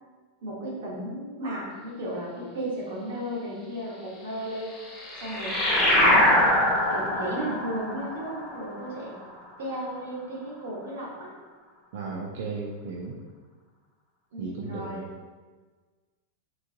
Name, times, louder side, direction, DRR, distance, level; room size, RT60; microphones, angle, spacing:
voice 1, 0.4-4.7 5.2-6.3 6.9-9.1 9.6-11.3 14.3-15.0, right 1 dB, 90° right, -4 dB, 1.1 m, -34 dB
sound 1, 4.6-9.6, left 1 dB, 5° left, 0.7 m, -24 dB
voice 2, 11.9-13.2 14.4-15.1, right 4 dB, 55° right, -2 dB, 0.4 m, -35 dB
3.8 x 2.7 x 2.7 m, 1.4 s
supercardioid pair, 180°, 0 cm